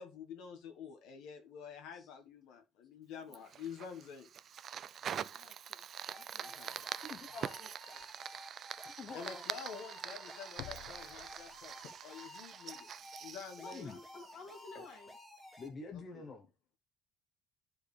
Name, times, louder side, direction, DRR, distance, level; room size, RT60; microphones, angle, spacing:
voice 1, 0.0-4.3 6.4-6.7 9.1-12.9 13.2-13.9 16.1-16.3, left 7 dB, 75° left, 1.3 m, -48 dB
Fire, 3.3-14.7, right 9 dB, 35° right, 0.3 m, -45 dB
voice 2, 5.4-5.9 6.1-6.6 7.4-8.1 13.6-15.1, left 3 dB, 50° left, 2.2 m, -54 dB
sound 1, 6.1-15.7, left 1 dB, 5° left, 1.3 m, -54 dB
voice 3, 7.0-7.6 9.0-9.5 11.7-11.9 13.7-14.0 14.7-14.8 15.6-16.5, left 3 dB, 25° left, 0.9 m, -47 dB
sound 2, 7.3-7.4 8.0-8.1 10.6-12.0 12.4-12.5, left 13 dB, 90° left, 0.5 m, -52 dB
12.0 x 4.6 x 3.3 m
cardioid pair, 175°, 0 cm